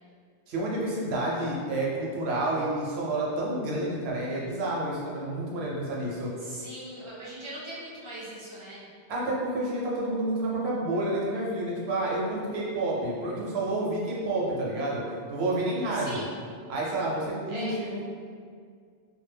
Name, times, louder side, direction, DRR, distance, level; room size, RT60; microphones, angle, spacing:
voice 1, 0.5-6.3 9.1-16.2 16.7-18.0, right 1 dB, 75° right, -4 dB, 0.8 m, -29 dB
voice 2, 6.4-8.9 15.9-16.3 17.5-17.8, right 1 dB, 40° right, -8 dB, 0.4 m, -40 dB
2.1 x 2.0 x 3.3 m, 2.1 s
omnidirectional pair, 1.1 m